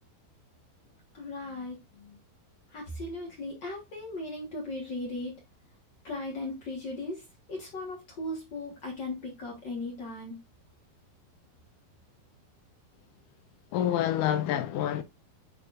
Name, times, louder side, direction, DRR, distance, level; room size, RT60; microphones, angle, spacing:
voice 1, 1.1-2.2 2.7-5.3 6.0-10.4, left 2 dB, 70° left, 1.0 m, -37 dB
voice 2, 13.7-15.0, left 11 dB, 90° left, 1.8 m, -27 dB
9.7 x 4.0 x 2.4 m
omnidirectional pair, 4.3 m